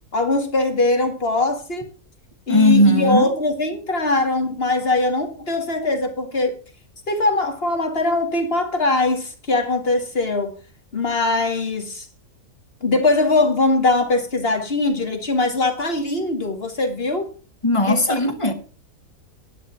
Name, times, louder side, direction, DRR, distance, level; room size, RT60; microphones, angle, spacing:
voice 1, 0.1-1.9 2.5-6.6 7.1-10.5 10.9-12.1 12.8-17.3 17.9-18.2, left 2 dB, 35° left, 2.3 m, -21 dB
voice 2, 2.5-3.3 17.6-18.5, left 1 dB, 20° left, 1.3 m, -17 dB
11.0 x 8.3 x 5.7 m
omnidirectional pair, 1.8 m